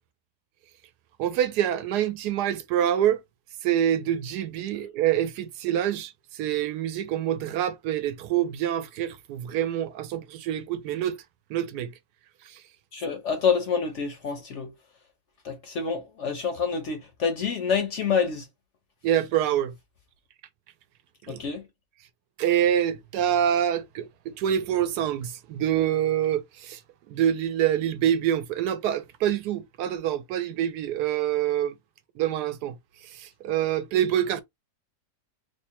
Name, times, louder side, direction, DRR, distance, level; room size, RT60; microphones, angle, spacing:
voice 1, 1.2-3.2 3.6-11.2 11.5-11.9 19.0-19.7 21.3-21.4 22.4-26.8 27.1-31.7 32.2-32.7 33.0-34.4, right 10 dB, 80° right, 1.1 m, -26 dB
voice 2, 12.9-14.7 15.4-18.4 21.3-21.6, left 6 dB, 60° left, 0.8 m, -27 dB
3.1 x 2.1 x 4.2 m
omnidirectional pair, 1.8 m